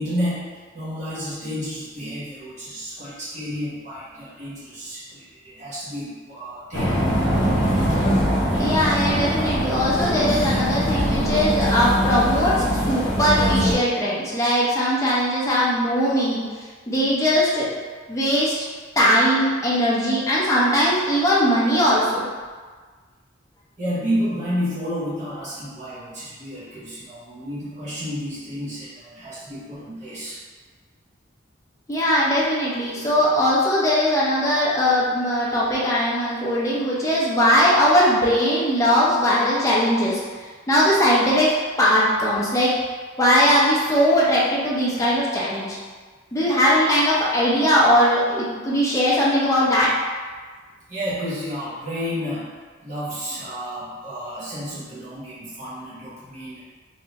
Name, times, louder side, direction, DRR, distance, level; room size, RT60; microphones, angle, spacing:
voice 1, 0.0-7.1 23.8-30.4 50.9-52.5 52.8-56.6, equal, 35° right, -11 dB, 1.1 m, -31 dB
sound 1, 6.7-13.7, equal, 70° left, 0.7 m, -22 dB
voice 2, 8.6-17.7 18.1-18.5 19.0-22.3 31.9-41.5 41.8-42.7 43.2-45.8 46.3-49.9, equal, 15° left, -7 dB, 0.6 m, -20 dB
3.2 x 2.8 x 2.8 m, 1.5 s
head